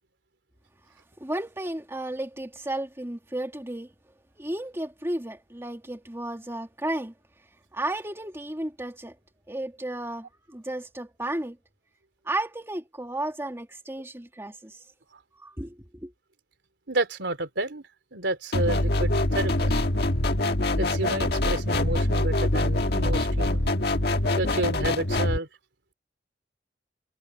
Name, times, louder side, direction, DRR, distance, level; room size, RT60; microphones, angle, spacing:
voice 1, 1.2-3.9 4.4-7.1 7.7-9.1 9.5-11.6 12.2-14.8 15.4-16.1, right 1 dB, 15° right, 2.4 m, -33 dB
voice 2, 16.9-17.8 18.1-19.8 20.8-23.7 24.4-25.5, right 2 dB, 90° right, 3.3 m, -30 dB
sound 1, 18.5-25.4, left 1 dB, 65° left, 1.6 m, -24 dB
head